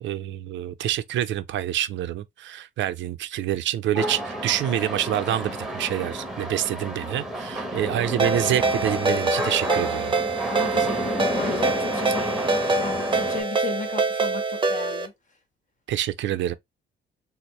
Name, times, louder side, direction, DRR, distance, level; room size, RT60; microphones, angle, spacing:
voice 1, 0.0-10.1 15.9-16.5, right 12 dB, 70° right, 0.4 m, -27 dB
sound 1, 4.0-13.4, equal, ahead, 1.2 m, -31 dB
Ringtone, 8.2-15.1, right 3 dB, 25° right, 0.7 m, -25 dB
voice 2, 10.5-15.1, left 5 dB, 40° left, 1.3 m, -35 dB
4.1 x 2.0 x 3.1 m
cardioid pair, 90°, 20 cm